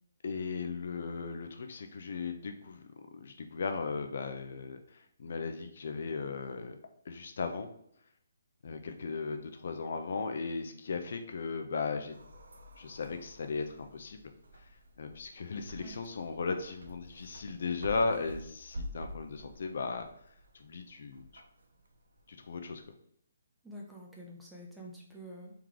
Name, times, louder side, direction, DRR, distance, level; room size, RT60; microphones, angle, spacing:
voice 1, 0.2-2.8 3.1-6.8 7.1-7.7 8.6-12.1 12.8-14.2 15.0-20.1 20.5-21.3 22.3-22.8, left 4 dB, 55° left, 6 dB, 0.5 m, -36 dB
sound 1, 12.1-22.8, equal, 80° right, 0.6 m, -49 dB
voice 2, 23.6-25.5, equal, 5° right, -3 dB, 0.6 m, -48 dB
3.6 x 3.1 x 3.7 m, 0.70 s
hypercardioid pair, 165°, 0 cm